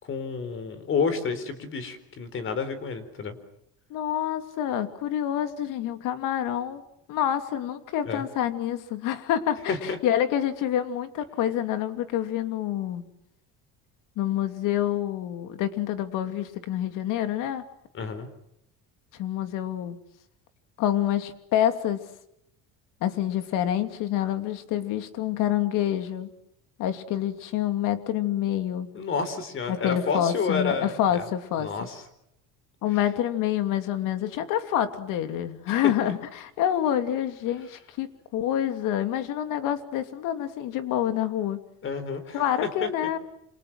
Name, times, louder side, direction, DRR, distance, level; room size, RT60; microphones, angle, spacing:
voice 1, 0.0-3.3 8.1-8.2 9.7-10.0 17.9-18.3 28.9-31.2 31.6-32.0 35.7-35.8 41.8-42.4 42.8-42.9, left 5 dB, 40° left, 12 dB, 4.4 m, -30 dB
voice 2, 3.9-6.8 7.1-13.0 14.2-17.6 19.2-20.0 20.8-22.0 23.0-26.3 26.8-28.9 29.7-31.9 32.8-41.6 42.3-43.2, left 11 dB, 65° left, 9 dB, 2.9 m, -27 dB
28.5 x 26.5 x 6.3 m, 0.78 s
cardioid pair, 145°, 34 cm